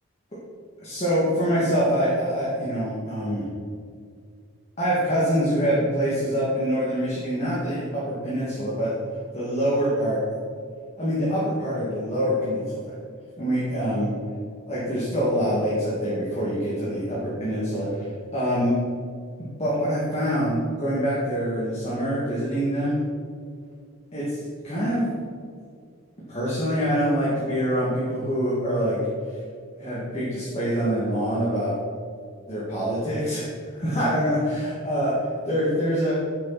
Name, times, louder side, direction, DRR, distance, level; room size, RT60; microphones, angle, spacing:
voice 1, 0.8-3.5 4.8-8.9 9.3-10.2 11.0-12.8 13.4-14.1 14.7-18.7 19.6-22.9 24.1-25.1 26.3-29.0 29.8-31.7 32.5-33.4 33.7-34.4 34.8-35.1 35.5-36.1, equal, 30° left, -8 dB, 2.4 m, -25 dB
15.5 x 7.3 x 4.3 m, 2.2 s
head